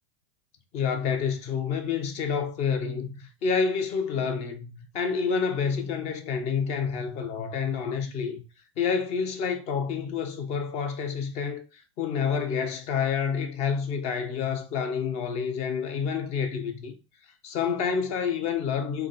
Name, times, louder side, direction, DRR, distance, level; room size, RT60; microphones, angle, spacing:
voice 1, 0.7-8.4 8.8-16.9 17.4-19.1, left 6 dB, 45° left, 1.0 m, -28 dB
3.8 x 3.4 x 4.1 m
hypercardioid pair, 90°, 16 cm